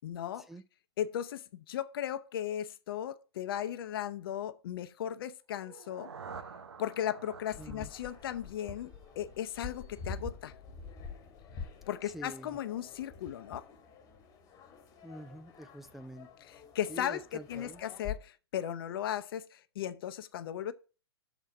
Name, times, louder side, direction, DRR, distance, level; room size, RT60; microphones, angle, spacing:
voice 1, 0.0-0.5 1.0-6.1 6.8-10.5 11.9-13.7 16.5-20.7, left 10 dB, 60° left, 0.7 m, -36 dB
sound 1, 5.6-9.5, right 5 dB, 85° right, 0.8 m, -49 dB
sound 2, 7.5-18.2, left 5 dB, 25° left, 1.5 m, -47 dB
voice 2, 7.6-7.9 12.0-12.6 15.0-16.3 16.9-17.8, right 1 dB, ahead, 0.4 m, -47 dB
7.3 x 4.1 x 6.3 m
hypercardioid pair, 120°, 14 cm